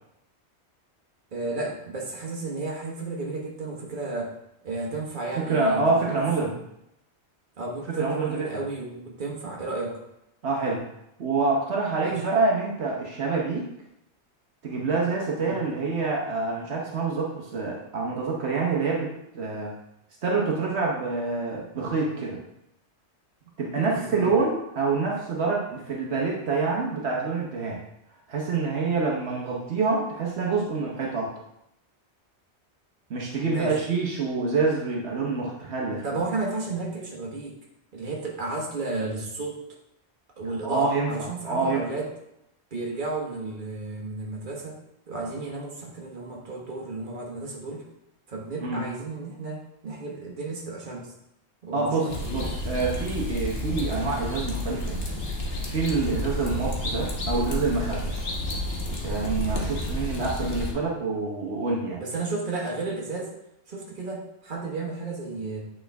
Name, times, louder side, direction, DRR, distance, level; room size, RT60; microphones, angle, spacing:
voice 1, 1.3-4.3 4.6-6.2 6.4-6.5 7.6-10.0 12.0-12.2 15.4-15.6 23.7-24.3 33.5-33.8 36.0-37.6 37.9-39.6 40.4-42.1 42.7-44.8 45.1-47.8 48.3-51.1 51.6-52.5 56.0-56.2 62.0-63.3 63.7-65.6, right 3 dB, 45° right, -2 dB, 1.4 m, -33 dB
voice 2, 5.4-6.5 8.0-8.6 10.4-10.8 11.2-13.7 14.6-19.7 20.2-22.4 23.6-27.8 28.3-31.3 33.1-36.2 40.6-41.9 48.6-48.9 51.7-55.0 55.6-58.3 59.0-62.0, right 4 dB, 70° right, -2 dB, 1.2 m, -27 dB
sound 1, 52.1-60.7, left 1 dB, 65° left, 1.4 m, -30 dB
8.5 x 3.8 x 3.4 m, 0.81 s
omnidirectional pair, 1.1 m